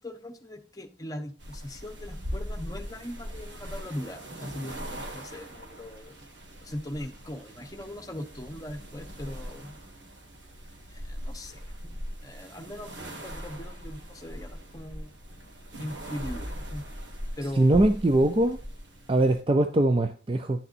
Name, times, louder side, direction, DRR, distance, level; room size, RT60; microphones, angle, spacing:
voice 1, 0.0-6.1 6.6-9.8 10.9-15.1 15.8-16.8 17.4-17.9, left 1 dB, 20° left, 1.0 m, -40 dB
sound 1, 1.4-19.4, equal, 85° right, 1.8 m, -40 dB
voice 2, 17.6-18.6 19.1-20.6, right 1 dB, 30° right, 0.5 m, -22 dB
11.5 x 6.7 x 2.6 m
head